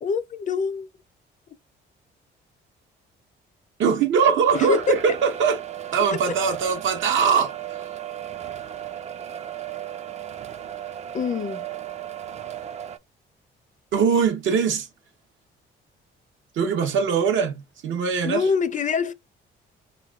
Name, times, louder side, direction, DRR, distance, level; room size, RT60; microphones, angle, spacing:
voice 1, 0.0-0.9 4.5-5.1 6.1-6.3 11.1-11.7 18.2-19.1, left 5 dB, 40° left, 0.5 m, -25 dB
voice 2, 3.8-5.6 5.9-7.5 13.9-14.9 16.6-18.4, right 6 dB, 75° right, 0.9 m, -21 dB
sound 1, 4.5-13.0, right 10 dB, 35° right, 0.4 m, -35 dB
4.3 x 3.1 x 2.3 m
cardioid pair, 90°, 20 cm